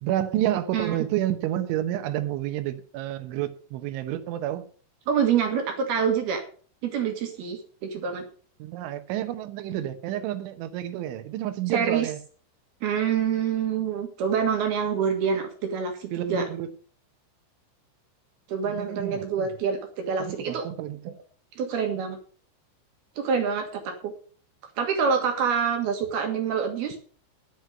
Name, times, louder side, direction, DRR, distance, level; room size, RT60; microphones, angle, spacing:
voice 1, 0.0-4.7 8.6-12.2 16.1-16.7 18.7-19.5 20.2-21.1, right 12 dB, 80° right, 3.2 m, -30 dB
voice 2, 5.1-6.4 6.8-8.2 11.7-12.1 12.8-16.5 18.5-20.7 21.6-22.2 23.2-24.1 24.8-27.0, right 7 dB, 65° right, 3.1 m, -26 dB
11.5 x 8.2 x 6.4 m
omnidirectional pair, 5.6 m